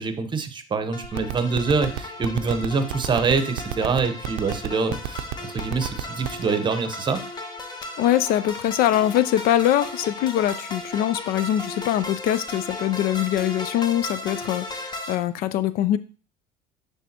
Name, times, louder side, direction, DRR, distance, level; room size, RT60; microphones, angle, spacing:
voice 1, 0.0-7.2, right 4 dB, 25° right, 9 dB, 0.9 m, -25 dB
sound 1, 0.9-15.2, left 2 dB, 25° left, 1.0 m, -36 dB
sound 2, 1.0-6.4, right 16 dB, 75° right, 0.5 m, -28 dB
voice 2, 8.0-16.0, left 12 dB, 55° left, 15 dB, 0.4 m, -23 dB
10.0 x 3.4 x 2.9 m, 0.37 s
supercardioid pair, 95°, 18 cm